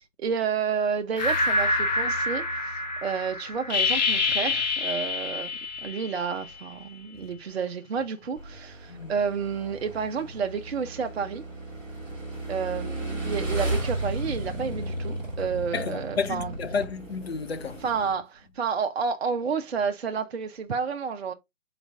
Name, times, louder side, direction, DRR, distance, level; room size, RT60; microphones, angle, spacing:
voice 1, 0.0-5.5 5.8-11.4 12.5-16.5 17.8-21.3, right 6 dB, 50° right, 0.6 m, -30 dB
sound 1, 1.2-6.6, left 3 dB, 30° left, 1.0 m, -27 dB
Motorcycle / Engine, 8.4-18.1, right 1 dB, 5° right, 0.7 m, -34 dB
voice 2, 15.7-17.8, left 5 dB, 50° left, 0.7 m, -31 dB
4.0 x 3.9 x 3.3 m
figure-of-eight pair, 145°, 40 cm